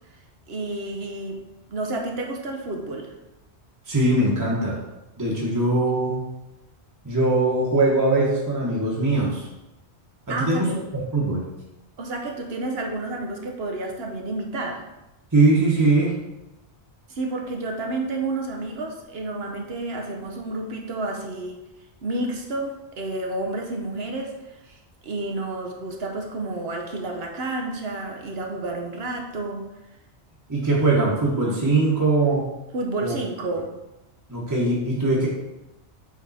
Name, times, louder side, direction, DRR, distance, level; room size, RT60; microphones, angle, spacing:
voice 1, 0.5-1.4 1.7-3.1 10.3-10.8 12.0-14.8 17.1-21.6 22.0-29.7 32.7-33.7, right 2 dB, 65° right, 2 dB, 1.0 m, -30 dB
voice 2, 3.9-4.8 5.2-6.2 7.0-9.5 10.3-10.7 11.1-11.5 15.3-16.2 30.5-32.5 33.0-33.2 34.3-35.3, right 2 dB, 20° right, -5 dB, 1.1 m, -21 dB
7.4 x 3.5 x 4.1 m, 0.97 s
omnidirectional pair, 1.1 m